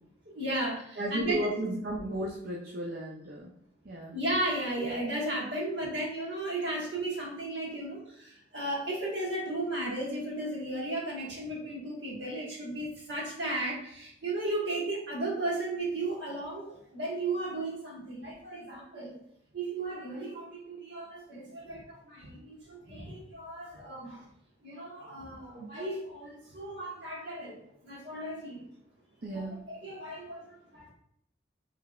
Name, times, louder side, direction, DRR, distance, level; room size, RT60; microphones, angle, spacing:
voice 1, 0.3-1.5 4.1-19.2 19.5-24.2 24.6-28.6 29.3-30.9, right 2 dB, 70° right, -4 dB, 1.5 m, -35 dB
voice 2, 1.0-3.5 3.8-4.1 29.2-29.6, right 1 dB, 55° right, -4 dB, 0.6 m, -34 dB
5.5 x 3.3 x 2.4 m, 0.71 s
head